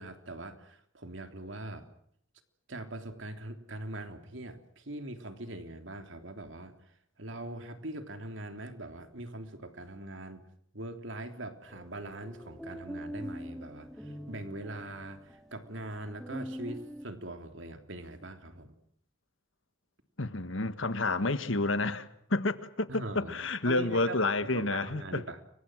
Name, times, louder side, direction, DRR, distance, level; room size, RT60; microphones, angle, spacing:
voice 1, 0.0-1.8 2.7-10.4 10.7-18.7 22.9-23.4 23.6-24.2 24.5-25.4, right 1 dB, 70° right, 3.3 m, -42 dB
sound 1, 11.7-17.1, equal, ahead, 2.0 m, -44 dB
voice 2, 20.2-25.2, left 2 dB, 75° left, 1.6 m, -30 dB
30.0 x 24.0 x 6.3 m
head